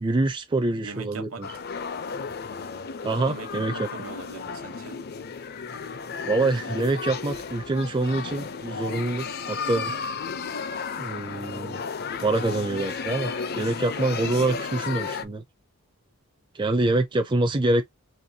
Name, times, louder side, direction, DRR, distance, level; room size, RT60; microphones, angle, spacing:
voice 1, 0.0-1.5 3.0-3.9 6.3-9.9 11.0-11.8 12.2-15.4 16.5-17.8, right 2 dB, 20° right, 0.4 m, -25 dB
voice 2, 0.8-1.4 3.3-5.0, right 3 dB, 75° right, 1.1 m, -40 dB
sound 1, 1.4-15.2, left 5 dB, 45° left, 0.5 m, -33 dB
4.3 x 2.9 x 2.7 m
head